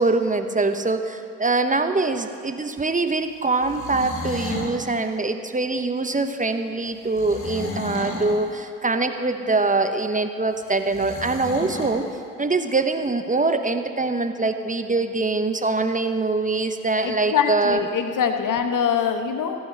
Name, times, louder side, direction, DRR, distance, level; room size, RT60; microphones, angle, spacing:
voice 1, 0.0-12.0 12.4-17.8, right 3 dB, 20° right, 8 dB, 0.9 m, -23 dB
sound 1, 3.5-4.8 7.1-8.4 10.9-12.0, left 2 dB, 35° left, 2.6 m, -32 dB
voice 2, 16.9-19.6, left 7 dB, 60° left, 7 dB, 1.0 m, -23 dB
15.5 x 5.7 x 8.0 m, 2.5 s
hypercardioid pair, 40°, 35 cm